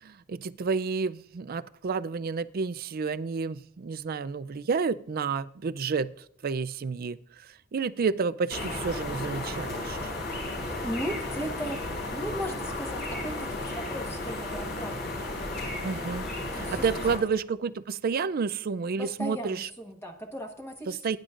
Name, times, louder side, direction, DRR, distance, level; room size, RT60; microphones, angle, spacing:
voice 1, 0.0-6.1 6.4-10.1 15.8-16.3 16.5-19.7 20.9-21.2, right 5 dB, 45° right, 15 dB, 0.4 m, -30 dB
sound 1, 8.5-17.2, left 2 dB, 55° left, 4.4 m, -34 dB
voice 2, 10.8-15.3 16.3-17.0 19.0-21.2, equal, 10° left, 2 dB, 1.3 m, -37 dB
19.5 x 10.5 x 2.5 m, 0.67 s
head